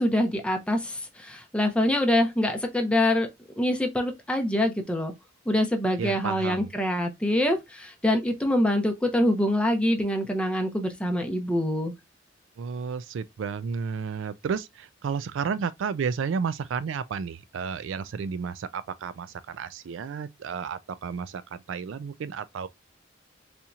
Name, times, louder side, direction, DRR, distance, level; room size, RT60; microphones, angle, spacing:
voice 1, 0.0-3.3 3.6-5.1 5.5-11.9, left 1 dB, 5° left, 0.8 m, -25 dB
voice 2, 6.0-6.7 12.6-22.7, right 6 dB, 70° right, 0.3 m, -32 dB
4.2 x 2.8 x 2.3 m
head